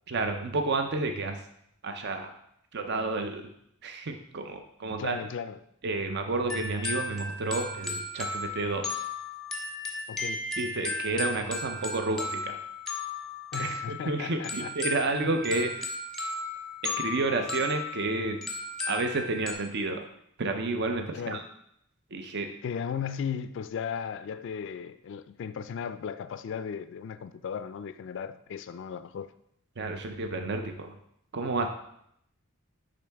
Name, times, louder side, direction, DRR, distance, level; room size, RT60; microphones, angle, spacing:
voice 1, 0.1-1.4 1.8-2.3 2.7-3.5 3.8-5.2 5.8-9.1 10.6-12.6 13.6-15.9 16.8-18.4 18.9-20.1 20.4-21.4 22.1-22.5 29.8-30.9 31.3-31.7, right 3 dB, 50° right, 0.6 m, -30 dB
voice 2, 5.0-5.6 10.1-10.4 13.5-14.7 15.1-15.4 21.1-21.5 22.6-29.3, left 7 dB, 60° left, 0.3 m, -36 dB
sound 1, 6.5-19.5, left 2 dB, ahead, 1.0 m, -35 dB
9.9 x 3.8 x 3.4 m
head